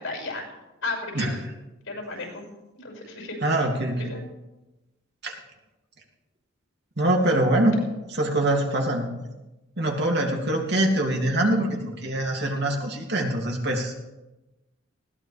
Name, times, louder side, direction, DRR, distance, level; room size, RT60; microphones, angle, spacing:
voice 1, 0.0-1.4 1.9-2.4 2.8-3.5 4.0-4.2, left 3 dB, 75° left, 1 dB, 6.2 m, -34 dB
voice 2, 3.4-4.1 5.2-5.3 7.0-7.8 8.1-9.1 9.8-14.0, right 1 dB, 55° right, 0 dB, 2.7 m, -24 dB
20.0 x 17.0 x 3.5 m, 1.0 s
head